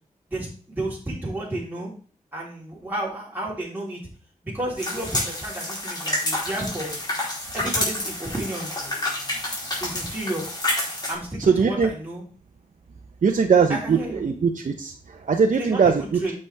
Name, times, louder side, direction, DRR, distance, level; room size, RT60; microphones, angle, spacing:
voice 1, 0.3-1.9 2.3-4.0 4.4-6.9 7.5-8.8 9.8-10.4 11.1-12.2 13.7-14.2 15.6-15.9 16.2-16.3, right 1 dB, 15° right, -5 dB, 4.1 m, -31 dB
sound 1, 4.8-11.1, left 1 dB, 30° left, 4.0 m, -29 dB
voice 2, 11.4-11.9 13.2-16.2, right 5 dB, 65° right, 2 dB, 1.0 m, -21 dB
8.5 x 7.0 x 3.6 m, 0.40 s
cardioid pair, 75°, 14 cm